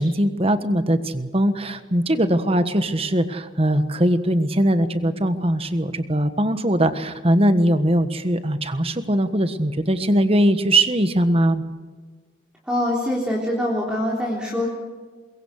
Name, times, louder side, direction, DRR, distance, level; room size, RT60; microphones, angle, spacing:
voice 1, 0.0-11.6, right 1 dB, 30° right, 10 dB, 1.4 m, -20 dB
voice 2, 12.7-14.7, left 1 dB, 5° right, -4 dB, 3.5 m, -24 dB
22.5 x 22.5 x 6.6 m, 1.4 s
head